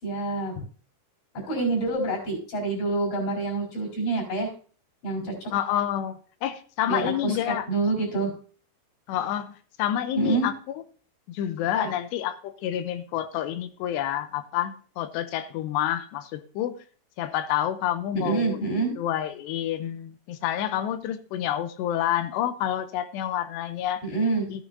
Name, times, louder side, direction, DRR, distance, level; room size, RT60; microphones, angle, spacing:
voice 1, 0.0-0.5 1.5-4.5 5.0-5.3 6.9-8.3 10.2-10.5 11.7-11.9 18.1-18.9 24.0-24.5, right 3 dB, 55° left, -3 dB, 5.8 m, -27 dB
voice 2, 5.5-7.7 9.1-9.5 9.8-10.8 11.3-16.8 17.2-24.0 24.5-24.6, left 11 dB, 90° left, 9 dB, 2.9 m, -28 dB
14.5 x 9.4 x 2.7 m, 0.42 s
omnidirectional pair, 4.9 m